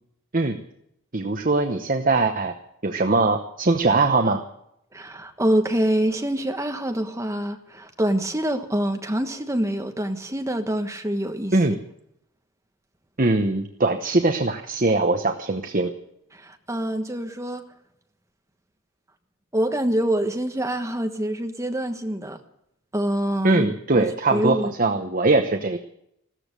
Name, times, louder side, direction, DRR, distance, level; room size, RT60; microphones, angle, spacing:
voice 1, 1.1-2.5 2.8-4.4 11.5-11.8 13.2-15.9 23.4-25.8, right 3 dB, 40° right, 6 dB, 1.0 m, -21 dB
voice 2, 4.9-11.6 16.3-17.6 19.5-22.4 22.9-24.7, right 1 dB, 15° right, 6 dB, 1.3 m, -25 dB
15.5 x 14.0 x 6.7 m, 0.75 s
head